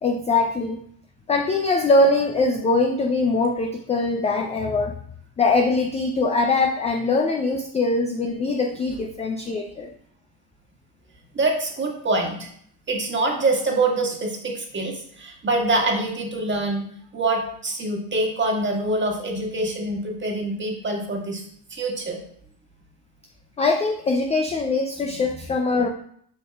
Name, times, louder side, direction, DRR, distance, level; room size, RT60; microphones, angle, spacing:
voice 1, 0.0-0.8 1.3-4.9 5.4-9.9 23.6-25.9, left 3 dB, 15° left, 3 dB, 0.4 m, -22 dB
voice 2, 11.3-12.5 12.9-16.8 17.1-21.4 21.7-22.2 25.0-25.2, right 2 dB, 25° right, 1 dB, 1.5 m, -25 dB
8.0 x 5.2 x 2.3 m, 0.64 s
hypercardioid pair, 80°, 49 cm